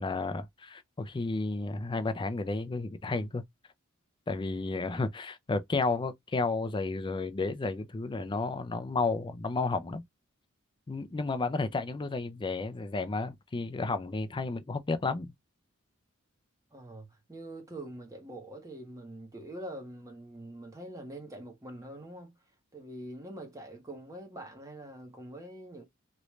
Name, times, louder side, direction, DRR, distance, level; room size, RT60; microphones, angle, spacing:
voice 1, 0.0-3.4 4.3-10.0 10.9-15.3, left 3 dB, 20° left, 0.4 m, -32 dB
voice 2, 16.7-22.3 22.7-25.8, right 1 dB, 15° right, 1.0 m, -44 dB
3.1 x 2.5 x 3.1 m
head